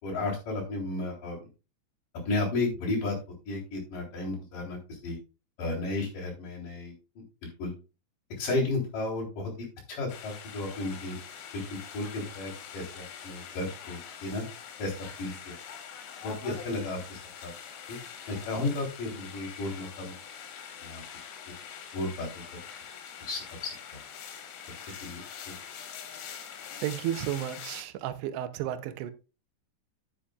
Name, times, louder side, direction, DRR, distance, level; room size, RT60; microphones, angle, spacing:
voice 1, 0.0-1.4 2.2-3.2 3.4-5.2 5.6-6.9 7.4-7.7 8.4-11.2 11.5-14.4 14.8-15.6 16.2-17.5 17.9-18.0 18.3-20.2 20.8-21.0 21.9-22.3 23.2-24.0 25.0-25.5, left 2 dB, 40° left, -3 dB, 4.9 m, -33 dB
sound 1, 10.1-27.8, left 8 dB, 75° left, 4.2 m, -44 dB
voice 2, 24.7-25.0 26.8-29.1, right 11 dB, 85° right, 9 dB, 2.4 m, -33 dB
10.0 x 9.8 x 2.4 m, 0.31 s
omnidirectional pair, 6.0 m